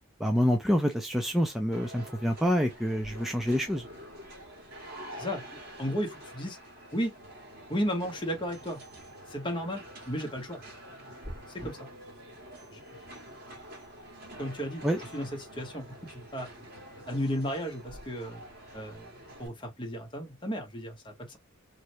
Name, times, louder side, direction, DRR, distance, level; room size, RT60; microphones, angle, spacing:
voice 1, 0.2-3.9 14.8-15.0, equal, ahead, 0.4 m, -27 dB
sound 1, 1.7-19.5, equal, 45° right, 1.8 m, -47 dB
voice 2, 5.1-6.6 6.9-7.1 7.7-8.8 9.3-10.6 11.5-11.9 12.7-12.8 14.4-14.8 15.1-16.7 17.1-18.4 18.7-19.1 19.4-21.4, equal, 25° left, 1.0 m, -34 dB
sound 2, 11.2-11.7, equal, 30° right, 1.7 m, -42 dB
3.2 x 2.4 x 2.7 m
head